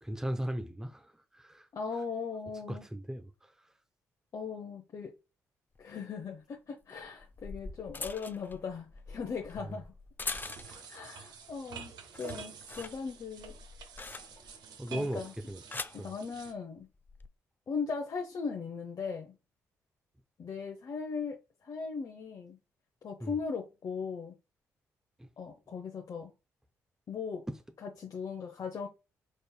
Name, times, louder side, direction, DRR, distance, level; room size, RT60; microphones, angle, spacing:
voice 1, 0.0-1.7 2.7-3.5 9.6-9.8 14.8-15.2 15.5-15.6 16.0-16.1 23.2-23.4 25.2-25.3, right 1 dB, 5° right, 0.7 m, -37 dB
voice 2, 1.7-2.8 4.3-5.1 5.8-9.9 10.4-13.6 14.5-14.6 14.9-15.3 15.9-16.9 17.7-19.3 20.4-22.6 23.0-24.3 25.4-26.3 27.1-27.4 27.8-28.9, left 5 dB, 55° left, 0.9 m, -39 dB
sound 1, 5.8-5.9 7.0-11.0 11.4-11.8 12.0-14.6 15.4-16.1 17.0-17.3, left 3 dB, 25° left, 0.4 m, -43 dB
sound 2, 10.3-16.5, right 6 dB, 65° right, 0.7 m, -48 dB
5.1 x 4.0 x 2.2 m
hypercardioid pair, 40°, 7 cm